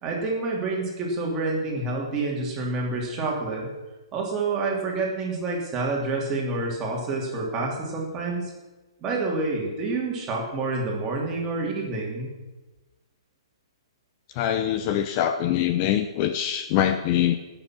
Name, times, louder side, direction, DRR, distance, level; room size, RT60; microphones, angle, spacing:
voice 1, 0.0-3.7 4.1-8.5 9.0-12.3, right 3 dB, 20° right, -2 dB, 2.9 m, -28 dB
voice 2, 14.3-17.4, left 11 dB, 30° left, 9 dB, 0.6 m, -24 dB
17.5 x 7.0 x 6.0 m, 1.1 s
hypercardioid pair, 160°, 3 cm